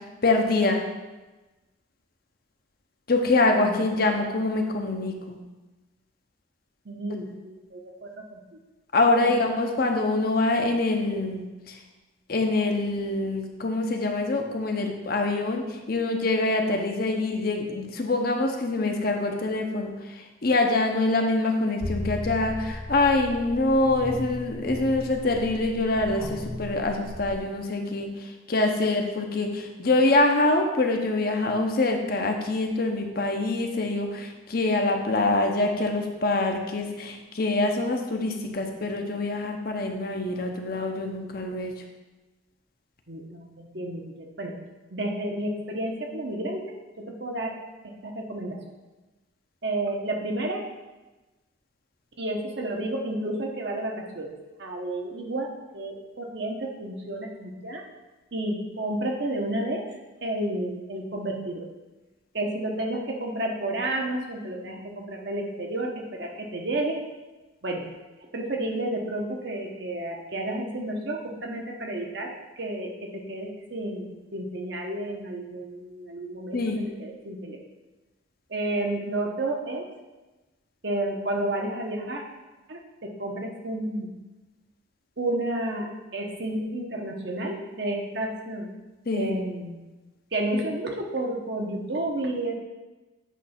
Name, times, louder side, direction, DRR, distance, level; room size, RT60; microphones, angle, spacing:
voice 1, 0.2-0.8 3.1-5.4 8.9-11.8 12.3-41.7 76.5-76.8 89.1-89.4, left 2 dB, 50° left, 3 dB, 0.8 m, -25 dB
voice 2, 6.8-8.4 9.1-9.3 43.1-44.5 44.9-46.6 47.0-47.6 47.8-48.6 49.6-50.6 52.2-54.3 54.6-55.5 55.7-57.8 58.3-59.8 60.2-61.7 62.3-66.9 67.6-67.8 68.3-72.9 73.3-76.6 77.0-77.6 78.5-79.8 80.8-82.2 82.7-84.1 85.2-88.7 89.1-89.8 90.3-92.6, right 1 dB, 55° right, 1 dB, 1.0 m, -31 dB
sound 1, 21.8-27.4, left 1 dB, 15° left, 0.8 m, -36 dB
8.3 x 3.3 x 5.8 m, 1.1 s
head